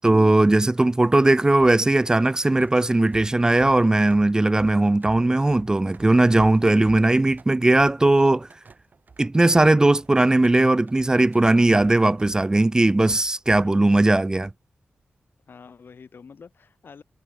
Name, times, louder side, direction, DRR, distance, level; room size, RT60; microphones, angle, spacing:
voice 1, 0.0-8.5 9.2-14.5, right 2 dB, 15° right, 0.7 m, -18 dB
sound 1, 1.6-14.5, right 4 dB, 45° right, 2.7 m, -48 dB
voice 2, 13.6-14.0 15.5-17.0, left 5 dB, 60° left, 3.5 m, -46 dB
wide cardioid pair, 160°, 4 cm